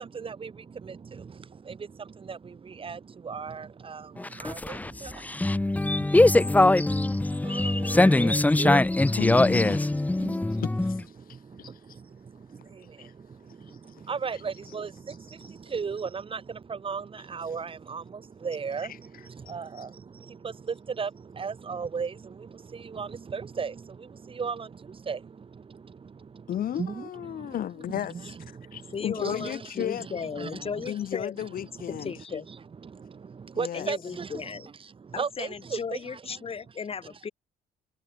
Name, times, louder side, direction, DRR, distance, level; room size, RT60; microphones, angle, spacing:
voice 1, 0.0-8.9 10.1-10.7 11.1-27.6 28.1-30.9 31.4-36.4, right 5 dB, 30° right, 4.2 m, -38 dB
sound 1, 4.2-11.0, left 2 dB, 10° left, 1.1 m, -22 dB
voice 2, 9.2-9.9 10.6-11.0 11.3-11.7 13.0-13.1 13.9-14.0 19.8-19.9 26.5-28.3 28.7-30.1 30.9-32.1 33.5-33.9, left 10 dB, 55° left, 7.1 m, -34 dB
voice 3, 28.9-31.3 31.9-32.5 33.7-34.7 35.1-37.3, left 6 dB, 35° left, 7.2 m, -36 dB
cardioid pair, 110°, 17 cm